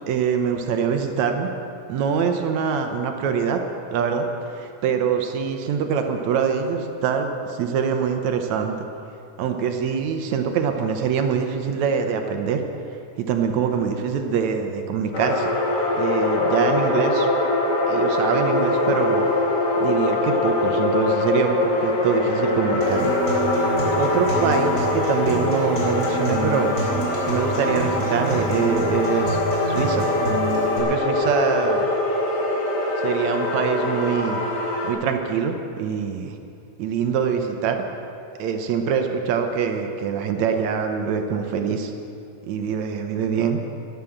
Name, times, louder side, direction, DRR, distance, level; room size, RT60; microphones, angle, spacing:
voice 1, 0.1-1.5 1.9-3.6 3.9-8.7 9.4-12.6 13.2-15.5 15.9-17.3 17.9-19.3 19.8-23.2 23.9-26.8 27.2-29.4 29.7-30.1 30.8-31.9 33.0-34.4 34.8-36.4 36.8-37.8 38.4-41.9 42.5-43.6, right 6 dB, 70° right, 5 dB, 2.1 m, -24 dB
sound 1, 15.1-34.9, left 2 dB, 65° left, 3.0 m, -23 dB
Acoustic guitar, 22.8-30.8, right 1 dB, 20° left, 4.0 m, -27 dB
11.5 x 11.5 x 7.2 m, 2.5 s
omnidirectional pair, 3.5 m